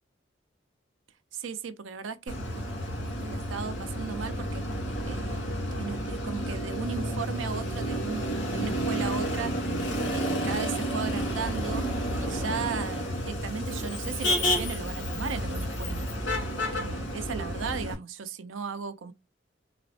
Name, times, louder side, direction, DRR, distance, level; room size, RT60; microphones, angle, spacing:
voice 1, 1.3-2.6 3.2-4.6 5.1-9.5 10.1-11.9 12.2-16.1 16.5-19.1, right 5 dB, 90° right, 0.5 m, -36 dB
Motor vehicle (road), 2.3-17.9, equal, 65° left, 1.7 m, -31 dB
4.0 x 2.0 x 2.7 m
head